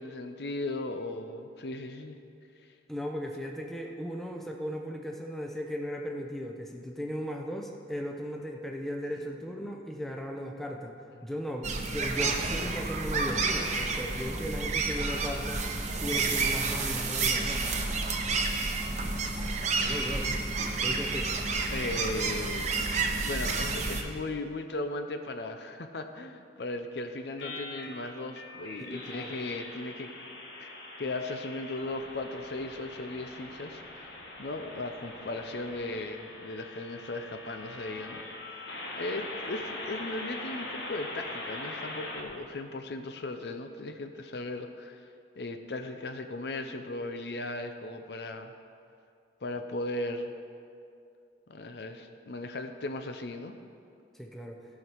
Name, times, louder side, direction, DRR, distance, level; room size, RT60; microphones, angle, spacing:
voice 1, 0.0-2.2 3.9-4.0 11.2-11.3 20.9-21.0 21.7-22.9 23.2-30.1 30.6-30.7 31.0-34.1 34.4-38.2 39.0-45.0 45.4-48.5 49.4-50.3 51.5-53.6, left 2 dB, 65° left, 7 dB, 0.6 m, -37 dB
voice 2, 2.9-10.9 11.2-15.6 15.9-17.6 19.7-20.3 20.8-21.3 28.8-29.4 54.1-54.6, equal, ahead, 1 dB, 0.7 m, -37 dB
sound 1, 11.6-24.0, right 3 dB, 40° right, 0.8 m, -30 dB
sound 2, 27.4-42.2, left 2 dB, 80° left, 1.5 m, -42 dB
16.0 x 5.8 x 4.6 m, 2.4 s
head